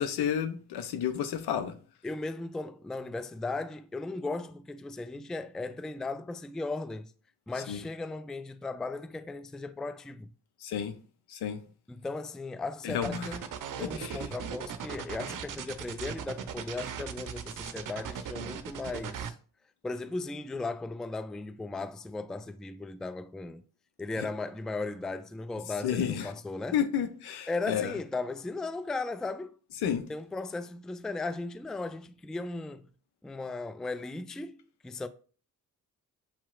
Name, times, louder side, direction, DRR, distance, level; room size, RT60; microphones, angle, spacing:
voice 1, 0.0-1.7 7.7-7.8 10.6-10.9 11.3-11.6 12.8-13.3 13.8-14.3 25.8-26.3 26.7-27.9 29.8-30.0, left 8 dB, 75° left, 0.7 m, -31 dB
voice 2, 2.0-7.1 7.5-10.3 11.9-13.5 13.8-19.4 19.8-23.6 24.0-26.8 27.5-29.5 30.1-32.9 33.2-34.6 34.8-35.1, left 3 dB, ahead, 0.3 m, -36 dB
sound 1, 13.0-19.3, right 8 dB, 50° right, 0.6 m, -38 dB
7.0 x 2.8 x 2.4 m
hypercardioid pair, 40°, 40 cm